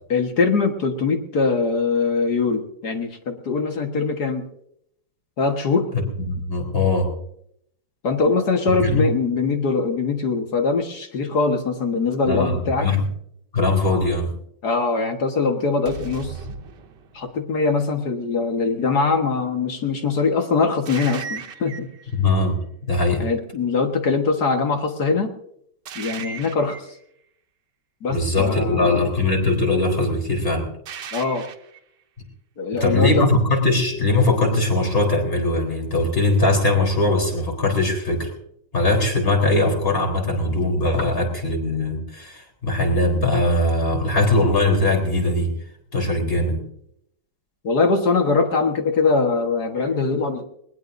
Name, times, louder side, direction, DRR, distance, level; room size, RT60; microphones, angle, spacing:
voice 1, 0.1-4.5 5.4-5.9 8.0-12.9 14.6-16.4 17.1-21.9 23.2-25.3 26.0-26.8 28.0-29.1 31.1-31.5 32.6-33.3 47.6-50.4, left 4 dB, 60° left, 4 dB, 2.1 m, -22 dB
voice 2, 5.9-7.1 8.8-9.1 12.3-13.1 13.5-14.3 22.1-23.3 28.1-30.7 32.8-38.3 38.7-45.5 45.9-46.6, left 2 dB, 30° left, 2 dB, 4.2 m, -20 dB
sound 1, 15.8-17.5 20.8-22.0 25.8-27.0 30.8-31.8, right 6 dB, 70° right, 1.7 m, -36 dB
21.0 x 20.0 x 2.7 m, 0.73 s
omnidirectional pair, 2.0 m